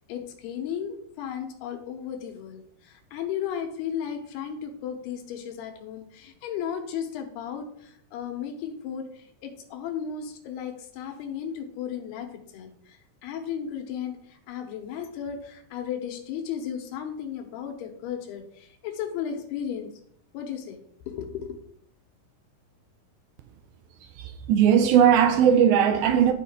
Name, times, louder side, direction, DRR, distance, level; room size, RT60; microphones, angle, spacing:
voice 1, 0.1-13.0 13.2-19.9 20.3-20.8 21.1-21.6, left 8 dB, 85° left, 2.9 m, -35 dB
voice 2, 24.2-26.3, right 8 dB, 80° right, 2.4 m, -19 dB
12.0 x 4.3 x 3.7 m
omnidirectional pair, 4.6 m